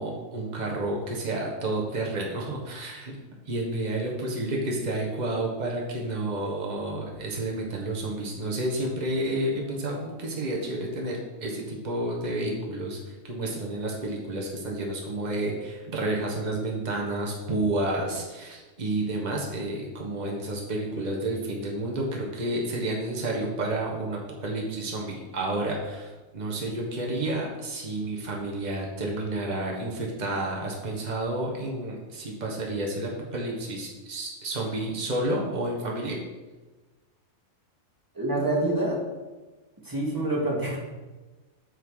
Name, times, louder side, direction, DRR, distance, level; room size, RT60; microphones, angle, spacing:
voice 1, 0.0-3.2 3.5-36.2, right 1 dB, 35° right, -2 dB, 1.5 m, -30 dB
voice 2, 38.1-39.0 39.8-40.8, right 1 dB, 15° right, -4 dB, 2.1 m, -26 dB
9.0 x 5.8 x 4.9 m, 1.2 s
omnidirectional pair, 1.3 m